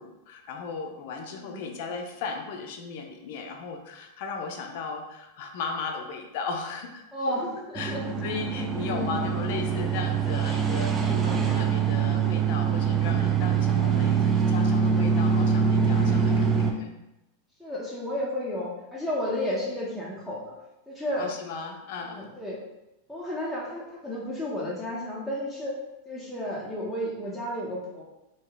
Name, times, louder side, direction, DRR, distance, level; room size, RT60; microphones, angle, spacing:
voice 1, 0.0-7.4 7.7-17.0 21.2-22.3, left 4 dB, 60° left, 3 dB, 0.5 m, -36 dB
voice 2, 1.3-1.6 7.1-8.0 8.8-9.2 12.9-13.3 17.6-20.5 20.9-21.2 22.0-22.6 23.1-25.7 26.1-28.0, left 1 dB, ahead, -7 dB, 0.8 m, -32 dB
sound 1, 7.7-16.7, right 6 dB, 25° right, 0.4 m, -24 dB
2.9 x 2.3 x 3.4 m, 0.94 s
hypercardioid pair, 105°, 0 cm